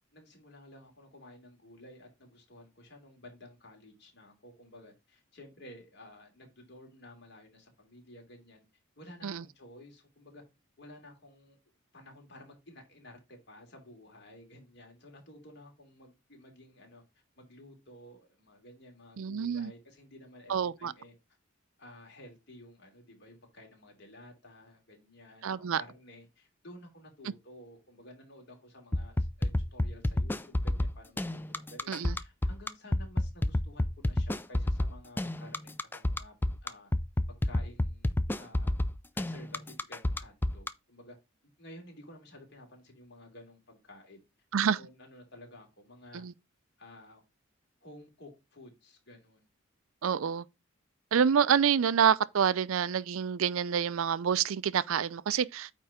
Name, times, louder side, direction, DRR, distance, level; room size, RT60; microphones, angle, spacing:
voice 1, 0.1-8.6 9.0-10.4 10.8-11.6 11.9-21.1 21.8-36.3 36.6-36.9 37.3-38.7 39.1-41.2 41.6-44.2 44.6-46.2 46.8-47.2 47.8-49.5, left 1 dB, 50° left, 3.0 m, -53 dB
voice 2, 19.2-19.7 20.5-20.9 25.4-25.8 31.9-32.1 44.5-44.8 46.1-46.3 50.0-50.4 51.1-55.7, right 7 dB, 75° right, 0.4 m, -27 dB
sound 1, 28.9-40.7, left 1 dB, 10° left, 0.3 m, -29 dB
8.9 x 3.4 x 4.9 m
head